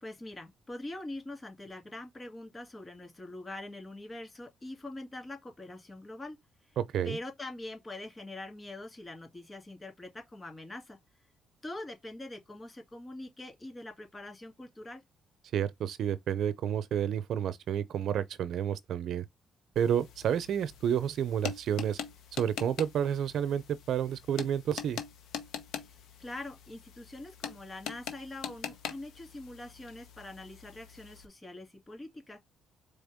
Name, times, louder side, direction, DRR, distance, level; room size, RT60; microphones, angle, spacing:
voice 1, 0.0-6.4 6.6-6.8 7.0-11.0 11.6-15.0 25.8-32.4, left 2 dB, 25° left, 2.5 m, -44 dB
voice 2, 6.8-7.2 15.5-19.2 19.8-22.0 22.3-25.0, right 9 dB, 70° right, 0.6 m, -30 dB
sound 1, 19.8-31.3, left 8 dB, 85° left, 0.9 m, -43 dB
4.3 x 3.4 x 3.5 m
cardioid pair, 90°, 0 cm